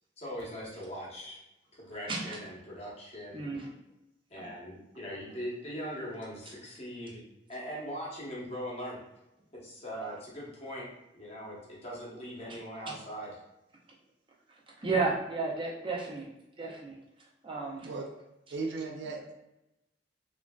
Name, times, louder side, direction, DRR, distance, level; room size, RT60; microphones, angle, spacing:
voice 1, 0.2-1.4 1.8-3.4 4.3-7.2 7.5-9.0 9.5-10.9 11.1-13.4, equal, 35° left, -5 dB, 0.9 m, -40 dB
voice 2, 2.1-2.4 3.3-3.7 4.4-4.5 14.8-16.3 16.6-17.0 17.4-17.9, right 3 dB, 30° right, -3 dB, 0.6 m, -32 dB
voice 3, 18.5-19.3, right 3 dB, 70° right, 2 dB, 0.4 m, -36 dB
3.0 x 2.5 x 2.2 m, 0.92 s
head